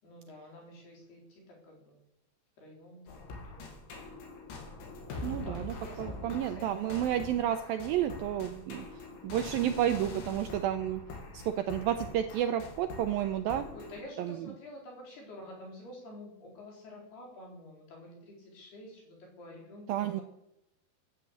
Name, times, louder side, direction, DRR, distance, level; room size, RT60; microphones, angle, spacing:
voice 1, 0.0-2.0 2.6-3.7 5.3-7.1 9.1-9.2 13.7-20.2, left 1 dB, 65° left, -1 dB, 6.1 m, -49 dB
sound 1, 3.1-14.0, left 2 dB, 85° left, 5.0 m, -44 dB
voice 2, 5.2-8.9 9.2-11.0 11.3-13.7 14.2-14.4 19.9-20.2, right 11 dB, 90° right, 8 dB, 2.1 m, -31 dB
14.0 x 9.7 x 8.6 m, 0.86 s
omnidirectional pair, 5.0 m